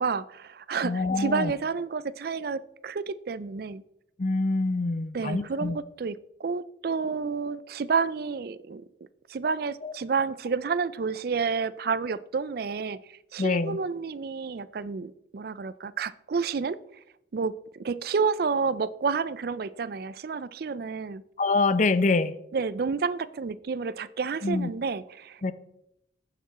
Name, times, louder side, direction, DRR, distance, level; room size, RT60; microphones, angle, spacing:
voice 1, 0.0-3.8 5.1-8.8 9.3-16.8 17.3-21.2 22.5-25.5, right 5 dB, 55° right, 16 dB, 0.4 m, -30 dB
voice 2, 0.8-1.5 4.2-5.8 9.8-9.9 13.4-13.8 21.4-22.3 24.4-24.7 25.4-25.5, left 3 dB, 40° left, 14 dB, 0.5 m, -25 dB
14.5 x 5.9 x 4.1 m, 0.79 s
head